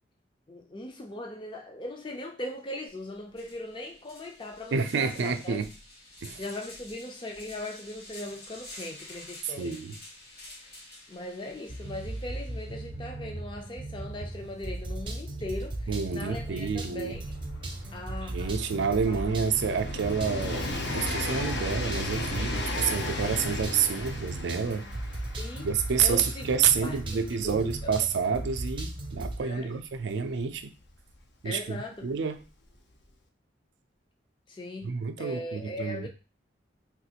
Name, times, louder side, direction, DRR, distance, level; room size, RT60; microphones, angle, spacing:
voice 1, 0.5-5.6 6.4-9.8 10.6-10.7 11.1-17.2 17.9-18.6 18.9-19.2 25.4-25.7 26.0-26.5 26.8-27.9 29.4-29.7 31.4-32.1 34.5-36.1, left 1 dB, 25° left, 0.5 m, -39 dB
sound 1, 2.9-3.0 3.3-12.9, left 2 dB, 55° left, 1.3 m, -49 dB
voice 2, 4.7-5.7 6.2-6.4 9.6-10.0 15.9-17.2 18.2-20.7 20.9-24.9 25.6-30.7 31.4-32.4 34.8-36.1, right 6 dB, 75° right, 0.4 m, -29 dB
sound 2, 11.7-29.4, right 1 dB, 25° right, 0.5 m, -37 dB
Train, 14.2-14.3 14.5-31.1 32.1-32.2, left 2 dB, 70° left, 0.6 m, -37 dB
3.6 x 2.4 x 2.8 m
head